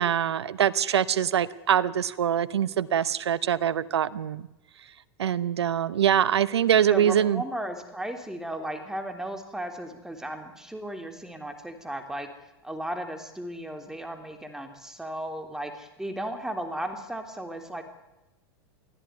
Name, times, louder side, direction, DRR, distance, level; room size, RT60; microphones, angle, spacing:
voice 1, 0.0-4.5 5.2-7.4, right 9 dB, 90° right, 18 dB, 1.0 m, -24 dB
voice 2, 6.9-12.3 12.6-17.8, right 1 dB, 5° right, 6 dB, 3.4 m, -35 dB
23.5 x 15.0 x 9.5 m, 0.98 s
hypercardioid pair, 120°, 13 cm